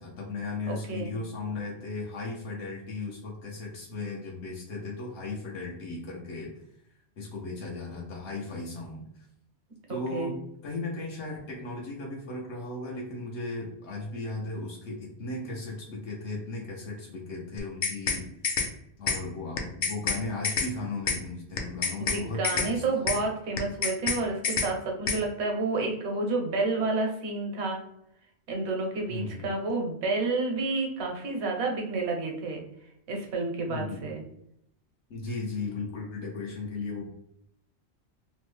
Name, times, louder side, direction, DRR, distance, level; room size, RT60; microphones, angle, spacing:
voice 1, 0.0-6.5 7.2-9.2 9.9-10.4 10.6-18.6 19.0-23.1 29.1-29.5 33.7-34.1 35.1-37.1, left 3 dB, 80° left, -3 dB, 1.0 m, -36 dB
voice 2, 0.7-1.1 9.9-10.3 22.0-27.8 28.5-32.6 33.1-34.2, right 3 dB, 75° right, 2 dB, 1.0 m, -30 dB
sound 1, 17.6-18.2 18.4-18.7 19.1-19.2 19.6-20.2 20.4-20.7 21.1-21.2 21.6-22.2 22.4-22.7 23.1-23.2 23.6-24.2 24.4-24.7 25.1-25.2, left 5 dB, 60° left, 0.6 m, -27 dB
3.1 x 2.0 x 3.1 m, 0.76 s
omnidirectional pair, 1.2 m